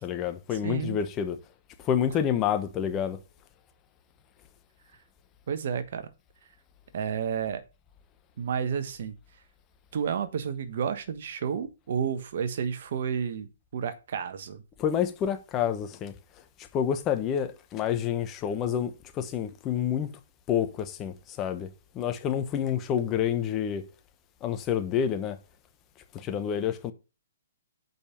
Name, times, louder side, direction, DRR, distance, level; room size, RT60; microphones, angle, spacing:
voice 1, 0.0-1.4 1.8-3.2 14.8-20.1 20.5-21.7 21.9-23.8 24.4-25.4 26.1-26.9, left 9 dB, 25° left, 1.0 m, -28 dB
voice 2, 0.6-1.0 5.5-6.1 6.9-7.6 8.4-9.1 9.9-14.6, right 7 dB, 60° right, 1.3 m, -31 dB
6.9 x 5.4 x 7.1 m
hypercardioid pair, 135°, 0 cm